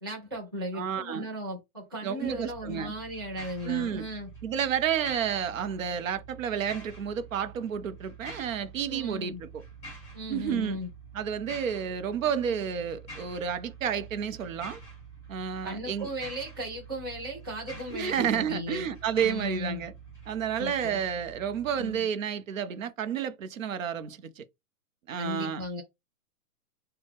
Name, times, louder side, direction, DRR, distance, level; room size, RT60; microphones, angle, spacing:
voice 1, 0.0-4.3 8.9-9.4 10.1-10.9 15.6-18.9 19.2-19.8 20.6-21.0 21.8-22.1 25.2-25.8, equal, 15° right, 0.5 m, -36 dB
voice 2, 0.7-1.3 2.0-2.9 3.6-4.0 4.4-9.6 10.3-10.8 11.1-14.8 15.3-16.1 17.9-19.9 20.3-24.4 25.1-25.6, right 8 dB, 60° right, 0.6 m, -31 dB
sound 1, 2.2-22.0, right 4 dB, 15° left, 2.1 m, -47 dB
4.0 x 2.1 x 3.4 m
hypercardioid pair, 175°, 44 cm